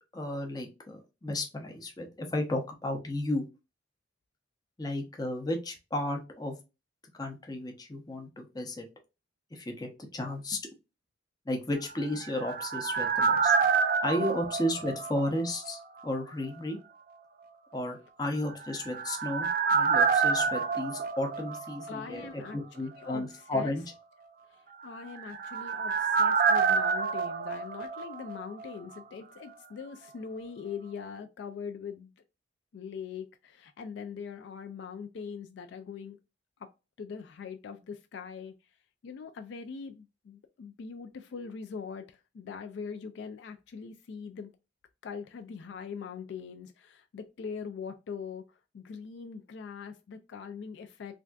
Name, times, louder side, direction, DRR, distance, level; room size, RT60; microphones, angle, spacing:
voice 1, 0.1-3.4 4.8-6.6 7.2-8.9 9.5-10.6 11.5-13.5 14.0-16.8 17.7-23.8, left 1 dB, 20° left, 0.6 m, -33 dB
sound 1, 11.9-15.7 16.0-16.1 18.5-22.2 22.5-22.6 24.8-28.7 28.9-29.0, right 5 dB, 45° right, 0.4 m, -28 dB
voice 2, 21.9-23.7 24.5-32.1 32.7-36.2 36.6-36.7 37.0-38.5 39.0-44.5 45.0-51.2, left 6 dB, 65° left, 0.3 m, -42 dB
3.3 x 2.5 x 2.2 m
head